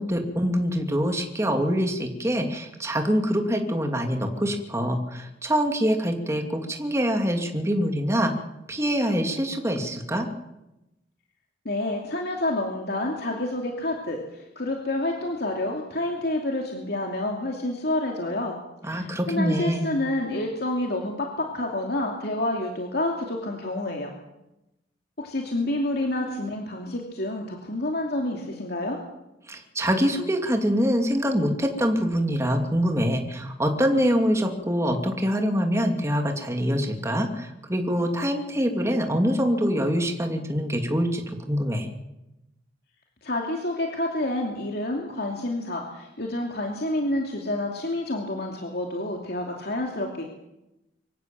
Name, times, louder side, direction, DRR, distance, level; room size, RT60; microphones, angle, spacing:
voice 1, 0.0-8.3 8.7-10.3 18.8-19.9 29.5-41.9, equal, 15° right, 4 dB, 2.6 m, -25 dB
voice 2, 11.6-18.5 18.8-24.1 25.2-29.0 43.2-50.2, left 1 dB, 60° left, 1 dB, 2.7 m, -28 dB
24.5 x 16.5 x 7.6 m, 0.92 s
head